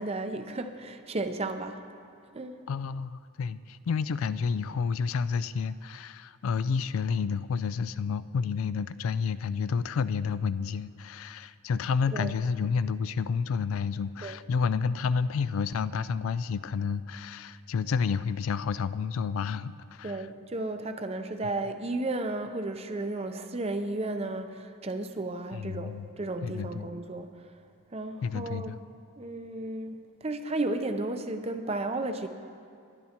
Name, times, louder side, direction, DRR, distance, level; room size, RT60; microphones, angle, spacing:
voice 1, 0.0-1.8 2.3-2.5 12.1-12.3 14.2-14.4 20.0-27.5 27.9-28.8 29.2-32.3, right 2 dB, 30° right, 7 dB, 0.6 m, -33 dB
voice 2, 2.7-20.2 25.5-26.1 26.4-26.9 28.2-28.8, left 5 dB, 75° left, 15 dB, 0.3 m, -30 dB
21.5 x 11.0 x 2.9 m, 2.4 s
head